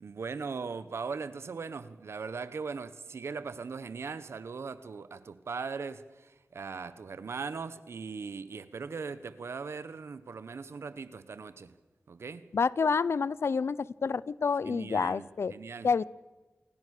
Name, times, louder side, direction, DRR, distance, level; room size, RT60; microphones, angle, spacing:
voice 1, 0.0-11.7 12.1-12.4 14.6-15.9, right 5 dB, 90° right, 1.3 m, -39 dB
voice 2, 12.5-15.5 15.8-16.0, left 5 dB, 80° left, 0.7 m, -28 dB
28.5 x 20.0 x 6.7 m
cardioid pair, 45°, 4 cm